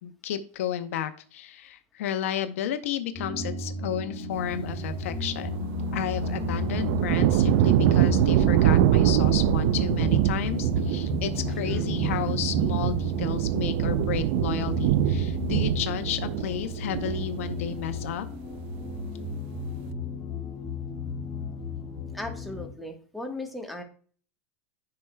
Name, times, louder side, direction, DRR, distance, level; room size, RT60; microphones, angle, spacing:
voice 1, 0.0-18.3, left 10 dB, 70° left, 9 dB, 0.8 m, -32 dB
sound 1, 3.1-22.7, left 3 dB, 30° left, 1.6 m, -33 dB
sound 2, 5.5-18.3 18.6-19.2, right 13 dB, 55° right, 0.4 m, -25 dB
voice 2, 22.1-23.8, left 1 dB, ahead, 2 dB, 1.2 m, -37 dB
9.6 x 5.8 x 2.2 m, 0.42 s
hypercardioid pair, 125°, 8 cm